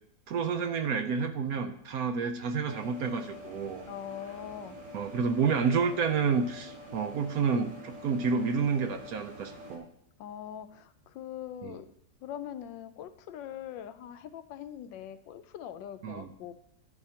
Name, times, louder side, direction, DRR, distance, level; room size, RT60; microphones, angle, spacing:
voice 1, 0.3-3.8 4.9-9.8 11.6-11.8 16.0-16.3, right 5 dB, 65° right, 8 dB, 1.0 m, -29 dB
sound 1, 2.7-9.8, left 1 dB, 85° right, 2.5 m, -47 dB
voice 2, 3.9-4.8 10.2-11.9 12.2-16.5, left 10 dB, 80° left, 11 dB, 1.4 m, -42 dB
11.0 x 10.5 x 2.9 m, 0.72 s
omnidirectional pair, 2.0 m